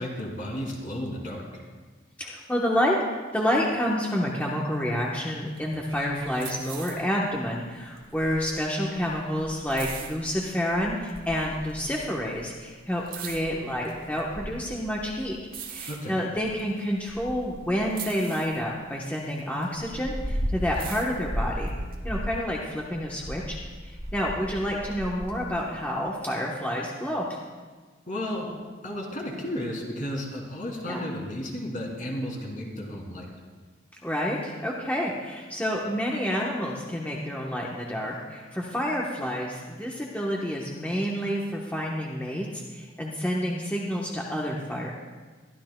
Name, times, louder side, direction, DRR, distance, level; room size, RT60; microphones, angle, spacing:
voice 1, 0.0-1.6 15.9-16.2 28.1-28.5 28.8-33.3, left 1 dB, 45° left, -1 dB, 2.8 m, -33 dB
voice 2, 2.2-3.0 3.3-15.4 15.7-21.7 22.0-23.6 23.8-27.3 30.9-31.0 34.0-44.9, equal, 10° left, -3 dB, 1.0 m, -29 dB
sound 1, 5.5-10.7 11.1-12.4 12.7-17.6 17.9-20.2 20.5-22.0, right 8 dB, 50° right, 1.3 m, -44 dB
sound 2, 5.7-7.4 7.7-13.6 13.9-15.6 16.3-18.7 18.9-19.0 19.3-22.5 22.8-25.6, equal, 30° right, 1.7 m, -37 dB
23.0 x 13.0 x 2.2 m, 1.4 s
head